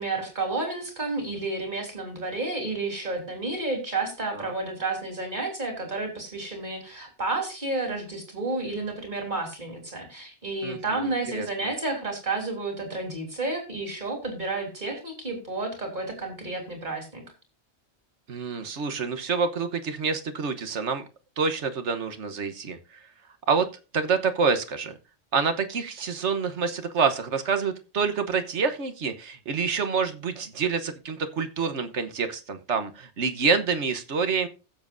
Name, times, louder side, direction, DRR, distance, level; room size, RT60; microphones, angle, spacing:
voice 1, 0.0-17.2, right 2 dB, 40° right, 3 dB, 3.3 m, -31 dB
voice 2, 10.6-11.5 18.3-21.0 21.4-22.8 23.5-23.7 23.9-25.0 25.3-34.5, right 5 dB, 75° right, 8 dB, 1.4 m, -27 dB
16.0 x 7.4 x 2.6 m, 0.32 s
omnidirectional pair, 1.2 m